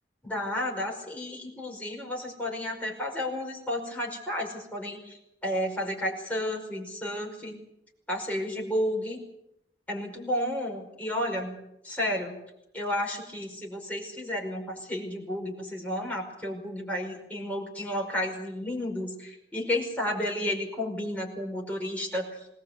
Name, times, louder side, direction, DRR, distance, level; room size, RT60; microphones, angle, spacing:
voice 1, 0.2-7.6 8.1-9.2 9.9-11.6 11.8-12.4 12.7-22.4, left 1 dB, 10° left, -1 dB, 5.3 m, -32 dB
20.0 x 19.5 x 8.2 m, 0.82 s
head